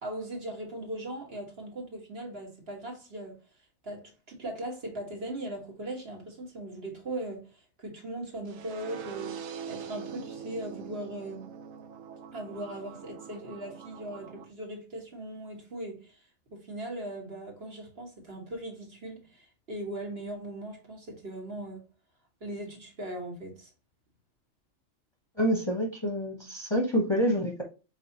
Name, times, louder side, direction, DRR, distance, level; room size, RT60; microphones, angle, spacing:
voice 1, 0.0-3.4 3.8-9.4 9.7-11.5 12.3-16.2 16.5-21.8 22.4-23.7, right 1 dB, 50° right, 1.7 m, -39 dB
sound 1, 8.5-14.4, right 6 dB, 80° right, 1.1 m, -43 dB
voice 2, 25.4-27.6, equal, 25° left, 0.8 m, -27 dB
4.8 x 3.7 x 2.8 m
omnidirectional pair, 1.3 m